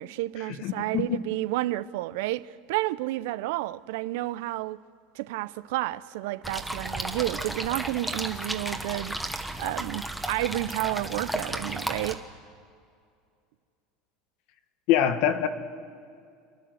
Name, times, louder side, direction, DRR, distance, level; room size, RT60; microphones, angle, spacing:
voice 1, 0.0-4.8 5.1-12.2, right 17 dB, 75° right, 0.6 m, -31 dB
voice 2, 0.6-1.2 14.9-15.5, left 10 dB, 55° left, 1.4 m, -24 dB
sound 1, 6.4-12.1, right 1 dB, 5° right, 1.3 m, -34 dB
29.5 x 11.0 x 7.9 m
supercardioid pair, 150°, 0 cm